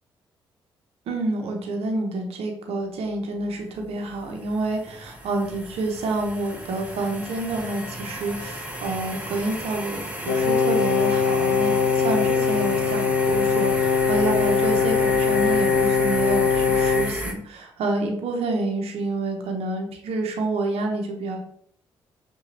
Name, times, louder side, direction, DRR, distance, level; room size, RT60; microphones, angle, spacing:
voice 1, 1.1-21.4, right 2 dB, 65° right, 3 dB, 0.8 m, -28 dB
sound 1, 3.5-17.3, equal, 15° right, 1.0 m, -33 dB
Brass instrument, 10.2-17.2, left 6 dB, 75° left, 0.5 m, -21 dB
5.6 x 2.3 x 2.7 m, 0.65 s
hypercardioid pair, 45°, 11 cm